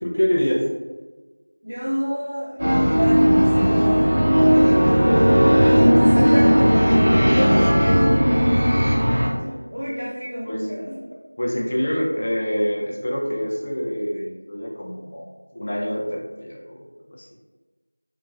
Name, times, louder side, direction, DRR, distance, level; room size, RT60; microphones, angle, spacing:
voice 1, 0.0-0.6 5.0-5.2 10.5-10.7 11.4-15.3 15.5-17.4, equal, 25° left, -2 dB, 0.3 m, -26 dB
voice 2, 1.6-6.8 7.3-11.0, equal, 65° right, -9 dB, 0.8 m, -28 dB
sound 1, 2.6-9.3, equal, 25° right, 0.8 m, -16 dB
3.7 x 2.4 x 2.3 m, 1.3 s
figure-of-eight pair, 175°, 0 cm